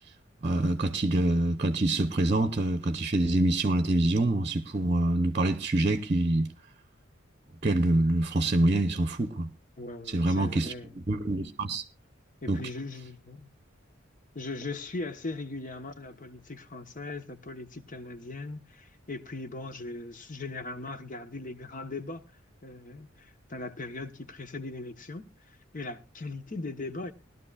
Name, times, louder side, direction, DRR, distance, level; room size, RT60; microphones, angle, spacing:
voice 1, 0.4-6.5 7.6-9.5 10.1-10.7 11.1-11.8 12.5-12.6, right 1 dB, 35° right, 0.8 m, -25 dB
voice 2, 9.8-10.9 12.4-13.5 14.3-22.2 22.6-25.3 25.7-27.1, left 2 dB, 45° left, 1.1 m, -39 dB
20.5 x 12.5 x 2.4 m
head